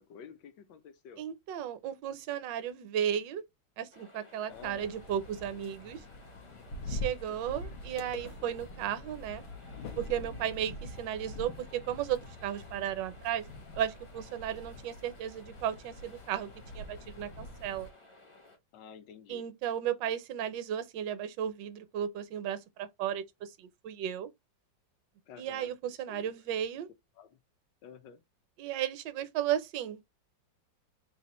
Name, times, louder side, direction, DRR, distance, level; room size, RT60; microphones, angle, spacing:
voice 1, 0.0-1.2 4.5-4.9 6.8-6.9 18.7-19.4 25.3-25.7 26.1-26.3 27.2-27.4 27.8-28.2, left 7 dB, 70° left, 1.3 m, -50 dB
voice 2, 1.2-3.4 3.8-6.0 6.9-9.4 10.0-13.4 13.8-16.5 16.7-17.9 19.3-24.3 25.4-26.9 28.6-30.0, right 10 dB, 70° right, 1.2 m, -34 dB
sound 1, 3.9-18.6, left 2 dB, 30° left, 0.5 m, -57 dB
sound 2, 4.5-17.9, left 1 dB, 90° left, 1.9 m, -44 dB
4.2 x 2.4 x 4.1 m
omnidirectional pair, 2.1 m